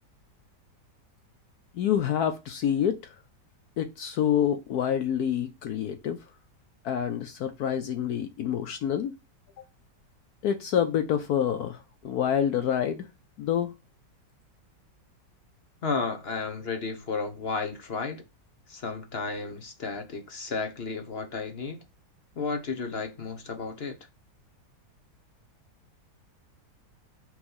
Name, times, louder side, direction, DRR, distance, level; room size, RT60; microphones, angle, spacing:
voice 1, 1.7-3.0 3.8-6.2 6.8-9.1 10.4-13.1 13.4-13.7, left 9 dB, 70° left, 1.1 m, -27 dB
voice 2, 15.8-18.2 18.7-21.8 22.3-24.0, left 4 dB, 40° left, 1.0 m, -33 dB
6.0 x 3.3 x 5.5 m
omnidirectional pair, 1.9 m